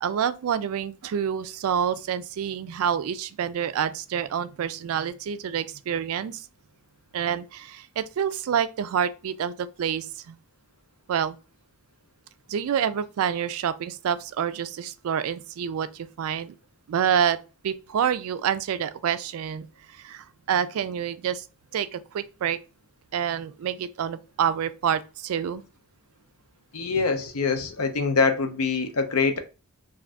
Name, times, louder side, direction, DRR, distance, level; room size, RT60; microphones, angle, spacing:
voice 1, 0.0-6.5 7.1-10.4 11.1-11.4 12.5-16.5 16.9-17.4 17.6-21.4 21.7-22.6 23.1-25.6, right 8 dB, 70° right, 0.3 m, -27 dB
voice 2, 26.7-29.4, left 4 dB, 80° left, 0.6 m, -24 dB
2.6 x 2.5 x 3.2 m
head